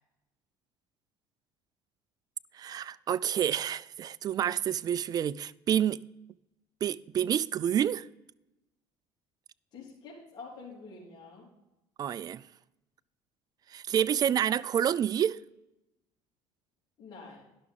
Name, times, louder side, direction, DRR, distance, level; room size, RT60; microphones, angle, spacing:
voice 1, 2.5-6.0 6.8-8.1 12.0-12.4 13.7-15.4, right 9 dB, 40° right, 0.4 m, -28 dB
voice 2, 9.7-11.5 17.0-17.5, left 4 dB, 45° left, 3.5 m, -47 dB
11.0 x 6.0 x 5.3 m
supercardioid pair, 85°, 10 cm